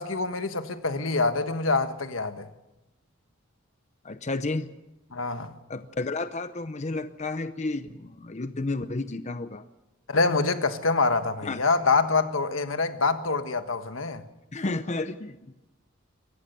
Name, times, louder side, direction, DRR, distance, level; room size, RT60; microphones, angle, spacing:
voice 1, 0.0-2.5 5.1-5.5 10.1-14.2, left 3 dB, 80° left, 1.4 m, -25 dB
voice 2, 4.0-4.7 5.7-9.6 11.4-11.6 14.5-15.5, left 2 dB, 35° left, 0.7 m, -31 dB
23.5 x 18.5 x 6.8 m
head